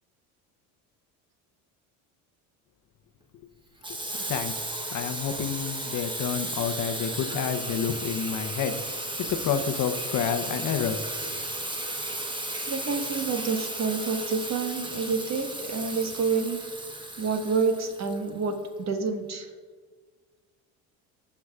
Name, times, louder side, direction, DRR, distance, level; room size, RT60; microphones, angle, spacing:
Water tap faucet / Sink (filling or washing), 3.8-18.6, right 1 dB, 10° right, 1.0 m, -34 dB
voice 1, 4.3-8.8 9.2-11.1, left 8 dB, 50° left, 8 dB, 0.8 m, -29 dB
voice 2, 12.7-16.6 17.2-19.5, right 4 dB, 40° right, 5 dB, 1.3 m, -28 dB
14.0 x 5.9 x 2.4 m, 1.5 s
supercardioid pair, 80°, 40 cm